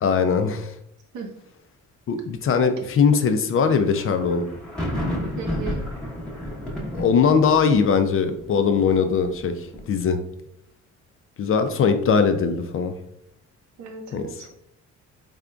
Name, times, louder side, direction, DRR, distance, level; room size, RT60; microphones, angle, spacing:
voice 1, 0.0-0.7 2.1-4.5 6.9-10.2 11.4-12.9 14.1-14.2, left 6 dB, 45° left, 8 dB, 0.4 m, -20 dB
sound 1, 3.7-9.9, left 1 dB, 5° left, 1.0 m, -32 dB
voice 2, 5.4-5.9 13.8-14.5, right 5 dB, 75° right, 2 dB, 0.9 m, -35 dB
3.7 x 3.5 x 2.3 m, 0.77 s
cardioid pair, 90°, 30 cm